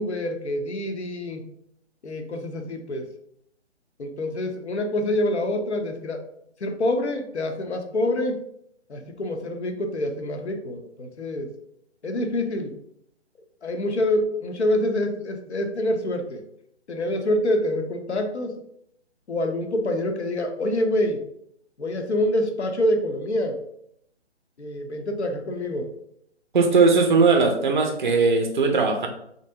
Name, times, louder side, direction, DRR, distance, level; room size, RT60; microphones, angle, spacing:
voice 1, 0.0-1.4 2.0-3.1 4.0-6.2 6.6-8.4 8.9-11.5 12.0-12.7 13.6-16.4 16.9-18.6 19.3-21.2 21.8-23.6 24.6-25.9, left 1 dB, 70° left, 5 dB, 0.7 m, -26 dB
voice 2, 26.5-29.1, right 4 dB, 45° right, 4 dB, 0.5 m, -19 dB
3.3 x 2.6 x 2.7 m, 0.73 s
figure-of-eight pair, 140°, 35 cm